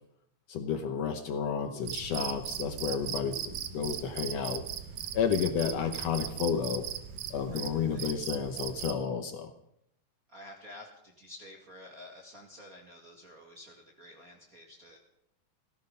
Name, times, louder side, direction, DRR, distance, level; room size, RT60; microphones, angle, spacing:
voice 1, 0.5-4.6 5.1-6.9 7.3-9.5, left 7 dB, 65° left, 8 dB, 1.7 m, -31 dB
Cricket, 1.8-9.0, right 9 dB, 70° right, 2.3 m, -38 dB
voice 2, 7.5-8.1 10.3-15.0, left 1 dB, 30° right, -1 dB, 2.0 m, -50 dB
17.5 x 15.0 x 5.5 m, 0.78 s
omnidirectional pair, 3.7 m